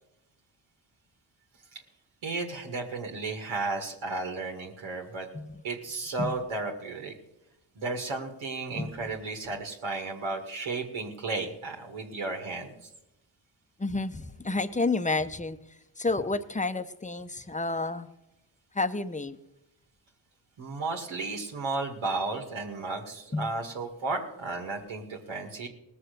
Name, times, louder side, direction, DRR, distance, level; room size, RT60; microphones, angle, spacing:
voice 1, 2.2-5.3 5.6-7.1 7.8-12.7 20.6-25.7, right 3 dB, 80° right, 2 dB, 2.1 m, -33 dB
voice 2, 8.7-9.1 13.8-15.6 16.0-18.1 18.7-19.4 23.3-23.5, left 3 dB, 15° left, 12 dB, 0.9 m, -30 dB
18.0 x 6.9 x 6.8 m, 0.89 s
supercardioid pair, 50°, 47 cm